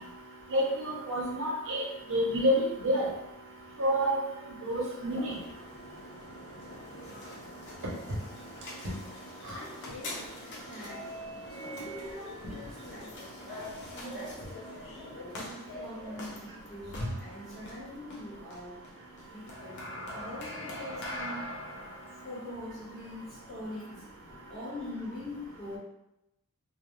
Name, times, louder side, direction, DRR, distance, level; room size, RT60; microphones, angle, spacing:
voice 1, 0.5-1.8 2.1-2.6 2.8-3.1 3.8-4.2 4.7-5.3, equal, 60° right, -3 dB, 0.8 m, -28 dB
sound 1, 5.0-24.1, left 1 dB, 55° left, 0.6 m, -43 dB
voice 2, 9.4-10.4 10.7-11.2 11.5-14.5 14.9-18.9 19.2-21.5 22.2-25.8, left 1 dB, ahead, -12 dB, 1.2 m, -43 dB
2.4 x 2.2 x 3.0 m, 0.88 s
head